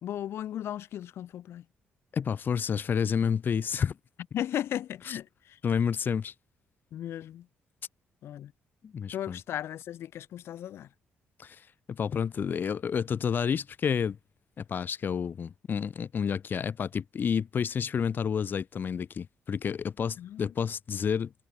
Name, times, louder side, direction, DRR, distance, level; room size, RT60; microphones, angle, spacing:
voice 1, 0.0-1.6 4.3-5.6 6.9-7.5 8.2-8.5 9.1-10.9 20.2-20.5, left 11 dB, 70° left, 1.9 m, -36 dB
voice 2, 2.1-4.0 5.1-5.2 5.6-6.3 8.8-9.4 11.4-11.6 11.9-14.2 14.6-21.3, left 7 dB, 50° left, 0.6 m, -30 dB
hypercardioid pair, 55°, 4 cm